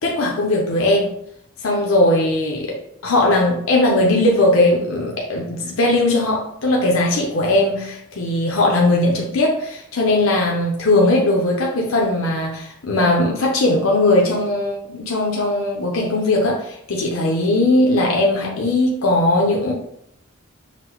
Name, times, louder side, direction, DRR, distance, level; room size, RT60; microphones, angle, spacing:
voice 1, 0.0-1.1 1.6-19.7, left 2 dB, 85° left, -1 dB, 0.6 m, -19 dB
5.8 x 2.1 x 3.0 m, 0.73 s
head